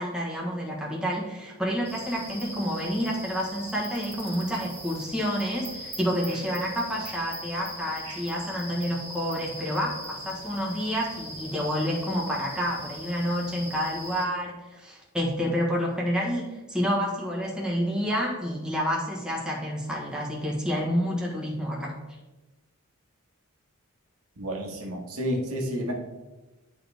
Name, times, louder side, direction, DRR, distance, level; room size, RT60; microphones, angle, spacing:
voice 1, 0.0-22.0, equal, 5° right, -3 dB, 1.3 m, -29 dB
sound 1, 1.8-14.3, equal, 30° right, 1.7 m, -40 dB
voice 2, 24.4-25.9, equal, 90° right, 0 dB, 1.5 m, -30 dB
10.5 x 4.2 x 3.5 m, 1.1 s
head